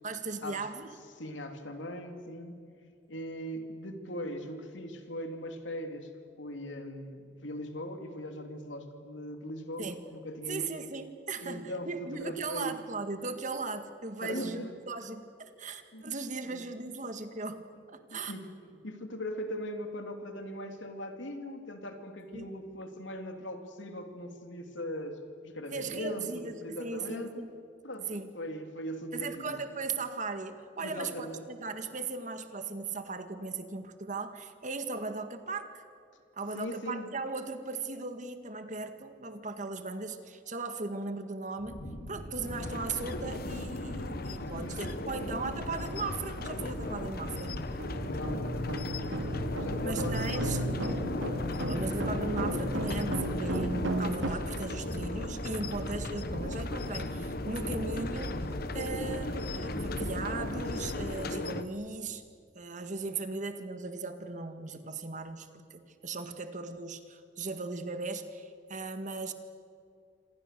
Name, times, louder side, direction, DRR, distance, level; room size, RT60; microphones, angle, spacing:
voice 1, 0.0-0.9 9.8-10.0 10.5-17.6 17.9-18.3 22.3-22.5 25.7-27.5 28.1-28.3 29.1-35.8 36.3-41.8 42.1-47.6 49.8-50.6 51.7-58.4 58.7-62.2 62.6-69.3, right 3 dB, 40° right, 8 dB, 1.8 m, -38 dB
voice 2, 1.2-2.6 3.1-6.1 6.3-10.7 11.4-12.7 14.2-14.7 15.9-16.0 16.4-16.6 18.1-18.5 18.8-27.4 27.8-29.6 30.8-31.4 36.5-37.1 44.6-44.8 45.1-45.2 48.1-50.5, equal, 75° left, 5 dB, 3.0 m, -40 dB
sound 1, 41.6-61.1, equal, 30° left, 6.8 m, -39 dB
sound 2, 42.4-61.6, left 2 dB, 50° left, 1.1 m, -38 dB
sound 3, 43.6-43.7 44.3-44.4 44.8-54.3, right 1 dB, 85° right, 2.8 m, -35 dB
27.0 x 26.5 x 6.8 m, 2.3 s
head